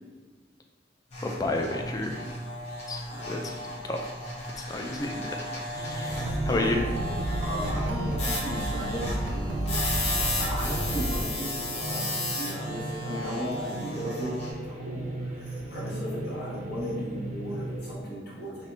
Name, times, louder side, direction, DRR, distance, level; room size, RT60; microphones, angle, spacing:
sound 1, 1.1-14.5, left 1 dB, 40° left, 0.8 m, -34 dB
voice 1, 1.2-2.3 2.9-3.6 3.9-4.0 4.6-6.8, left 2 dB, 20° left, 3 dB, 0.3 m, -31 dB
voice 2, 3.0-4.1 5.9-6.8 7.4-9.8 10.4-18.7, equal, 60° left, -7 dB, 1.1 m, -37 dB
sound 2, 5.7-17.9, right 2 dB, 40° right, 0.5 m, -37 dB
sound 3, 6.1-11.2, right 1 dB, 85° right, 0.6 m, -31 dB
5.0 x 2.1 x 2.6 m, 1.3 s
head